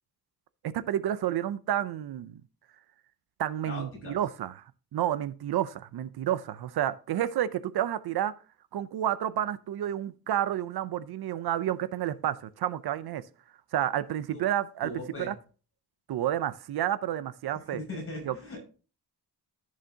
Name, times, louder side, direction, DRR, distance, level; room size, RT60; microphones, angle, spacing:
voice 1, 0.6-2.4 3.4-4.6 4.9-8.3 8.7-13.2 13.7-15.3 16.1-17.8 18.2-18.4, right 11 dB, 75° right, 15 dB, 0.6 m, -30 dB
voice 2, 3.6-4.2 14.3-14.5 14.8-15.3 17.7-18.6, left 1 dB, 35° left, -2 dB, 5.6 m, -39 dB
14.0 x 6.5 x 2.8 m, 0.36 s
wide cardioid pair, 175°, 39 cm